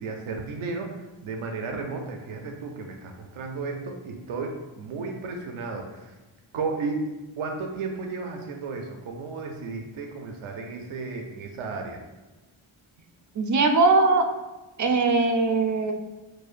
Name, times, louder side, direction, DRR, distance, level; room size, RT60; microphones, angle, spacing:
voice 1, 0.0-6.2 6.5-7.1 7.4-12.0, right 4 dB, 85° right, 3 dB, 0.5 m, -33 dB
voice 2, 13.4-14.3 14.8-15.9, right 3 dB, 40° right, 6 dB, 0.4 m, -20 dB
4.7 x 2.2 x 2.5 m, 1.1 s
wide cardioid pair, 70°, 48 cm